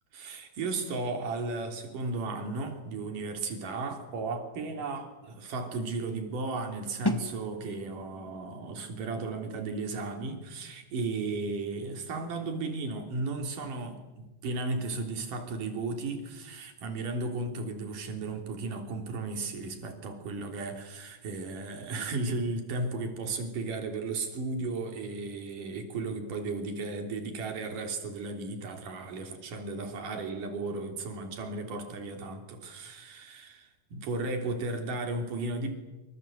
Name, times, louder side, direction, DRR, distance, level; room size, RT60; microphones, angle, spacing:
voice 1, 0.1-35.7, right 3 dB, 60° right, 5 dB, 4.8 m, -35 dB
sound 1, 7.0-12.8, left 1 dB, 10° left, 1.2 m, -39 dB
26.5 x 25.0 x 8.1 m, 1.1 s
omnidirectional pair, 4.3 m